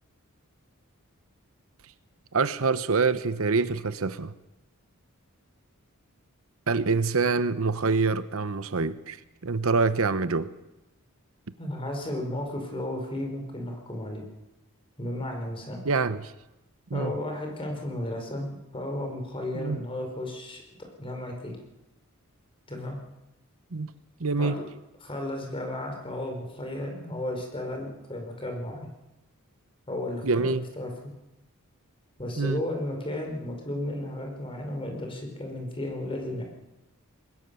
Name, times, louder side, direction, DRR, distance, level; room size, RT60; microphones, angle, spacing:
voice 1, 2.3-4.3 6.7-9.2 9.4-10.5 15.8-16.3 16.9-17.1 19.5-19.8 23.7-23.9 24.2-24.5 30.2-30.6 32.4-32.6, right 4 dB, 65° right, 13 dB, 0.9 m, -25 dB
voice 2, 11.6-14.2 15.0-15.8 16.9-20.6 21.0-21.6 22.7-23.0 24.4-24.6 25.0-28.9 29.9-30.9 32.2-36.4, left 1 dB, 25° left, 3 dB, 5.0 m, -34 dB
21.5 x 20.5 x 7.0 m, 0.97 s
head